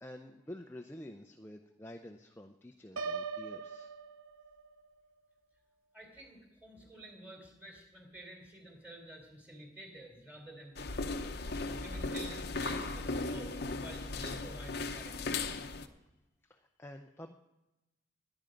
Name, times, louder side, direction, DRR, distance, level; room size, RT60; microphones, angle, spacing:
voice 1, 0.0-3.9 16.4-17.3, left 1 dB, 10° left, 4 dB, 0.5 m, -49 dB
Piano, 3.0-4.9, right 4 dB, 85° right, 0.7 m, -40 dB
voice 2, 5.9-15.5, right 1 dB, 10° right, 1 dB, 3.4 m, -51 dB
sound 1, 10.8-15.9, left 3 dB, 50° left, 0.8 m, -37 dB
21.5 x 8.9 x 5.2 m, 0.99 s
head